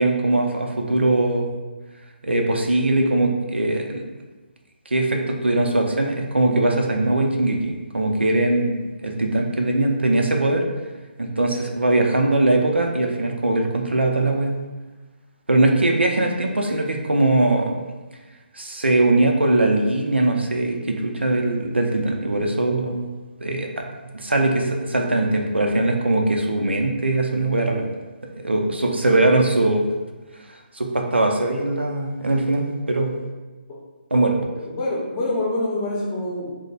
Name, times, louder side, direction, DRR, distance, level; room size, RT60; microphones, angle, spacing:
voice 1, 0.0-1.6 2.2-4.0 4.9-8.7 9.0-10.6 11.2-14.6 15.5-17.8 18.5-23.1 23.4-23.8 24.1-27.9 28.4-29.9 30.7-33.2 34.1-34.4, right 2 dB, 85° right, 2 dB, 0.5 m, -21 dB
voice 2, 34.5-36.5, left 2 dB, 25° left, -5 dB, 0.7 m, -25 dB
2.8 x 2.0 x 4.0 m, 1.2 s
figure-of-eight pair, 145°, 6 cm